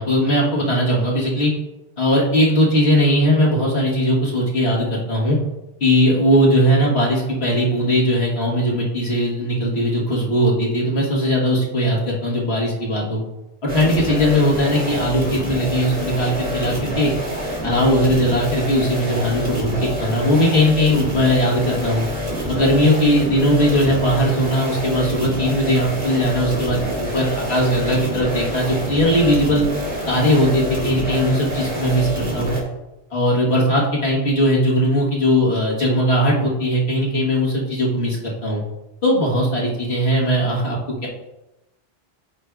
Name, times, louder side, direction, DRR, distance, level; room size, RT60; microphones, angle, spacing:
voice 1, 0.0-1.5 2.0-5.4 5.8-13.2 13.7-17.1 17.6-22.1 22.5-29.7 30.1-32.6 33.1-38.2 38.4-38.6 39.0-41.1, equal, 90° left, -5 dB, 1.9 m, -19 dB
sound 1, 13.7-32.6, equal, 70° right, 2.0 m, -27 dB
12.0 x 4.6 x 2.5 m, 0.95 s
omnidirectional pair, 1.0 m